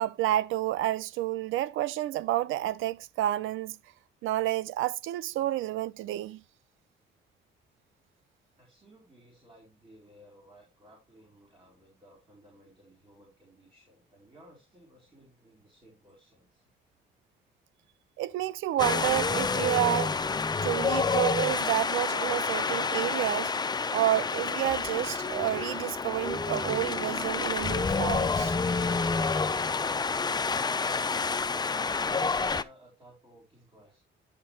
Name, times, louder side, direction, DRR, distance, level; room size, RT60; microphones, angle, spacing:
voice 1, 0.0-3.8 4.2-6.4 18.2-20.2 20.6-23.5 23.9-28.6, right 14 dB, 85° right, 0.5 m, -29 dB
voice 2, 8.5-16.7 31.9-34.0, equal, 25° right, 4.1 m, -57 dB
Wind, 18.8-32.6, left 4 dB, 20° left, 0.5 m, -29 dB
10.0 x 6.0 x 3.3 m
cardioid pair, 90°, 20 cm